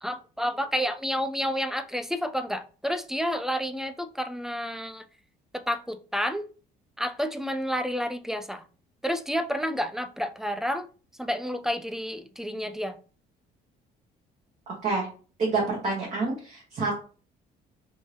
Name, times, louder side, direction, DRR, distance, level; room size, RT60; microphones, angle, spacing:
voice 1, 0.0-5.0 5.5-6.4 7.0-8.6 9.0-10.9 11.2-13.0, equal, 5° right, 9 dB, 0.3 m, -30 dB
voice 2, 14.7-15.1 15.4-16.9, right 3 dB, 45° right, -3 dB, 1.2 m, -28 dB
3.5 x 2.7 x 3.2 m, 0.38 s
cardioid pair, 110°, 17 cm